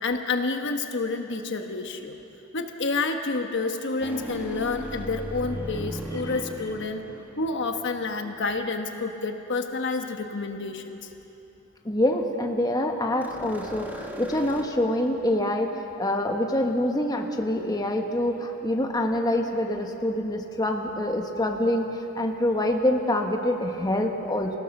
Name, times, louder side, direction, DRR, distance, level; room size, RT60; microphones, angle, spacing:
voice 1, 0.0-2.2 2.5-7.1 7.4-11.0, left 3 dB, 60° left, 5 dB, 1.2 m, -29 dB
sound 1, 4.0-8.3 13.2-14.6, equal, 10° right, 1.5 m, -37 dB
voice 2, 11.8-15.7 16.0-24.6, left 1 dB, 20° left, 3 dB, 1.2 m, -26 dB
25.5 x 17.0 x 6.6 m, 3.0 s
head